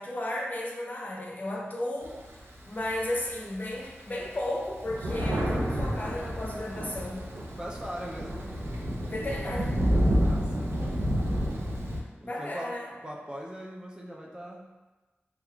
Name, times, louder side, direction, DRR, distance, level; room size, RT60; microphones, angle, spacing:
voice 1, 0.0-2.2 2.6-7.3 9.1-9.7 12.2-12.9, left 1 dB, 40° left, -2 dB, 0.6 m, -34 dB
Thunder, 2.0-3.3 3.8-3.9 4.2-12.0, equal, 75° right, 0.5 m, -29 dB
voice 2, 7.6-8.4 10.2-11.2 12.2-12.7 13.0-14.7, equal, 20° right, -2 dB, 0.4 m, -40 dB
5.3 x 2.3 x 2.3 m, 1.2 s
wide cardioid pair, 95°, 4 cm